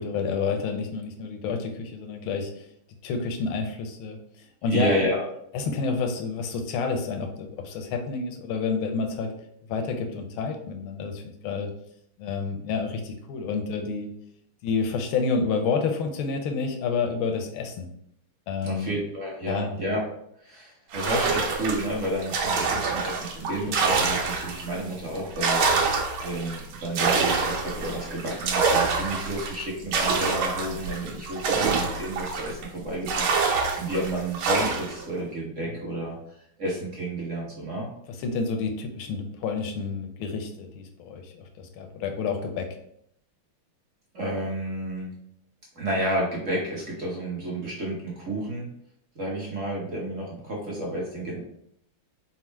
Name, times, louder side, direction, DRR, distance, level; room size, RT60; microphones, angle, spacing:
voice 1, 0.0-2.7 3.0-4.2 4.6-4.9 5.5-9.3 9.7-11.7 12.2-14.1 14.6-17.9 18.5-18.9 19.5-19.7 31.5-31.8 35.6-35.7 38.2-42.7, left 4 dB, 80° left, 4 dB, 1.4 m, -29 dB
voice 2, 4.7-5.2 18.6-20.0 20.4-25.9 26.2-36.2 36.6-37.9 44.1-45.1 45.7-48.7 49.1-51.4, right 1 dB, 45° right, -4 dB, 1.0 m, -31 dB
sound 1, 20.9-24.8 25.2-32.7 33.1-35.0, right 4 dB, 75° right, 1.5 m, -26 dB
4.2 x 2.1 x 4.5 m, 0.71 s
omnidirectional pair, 2.4 m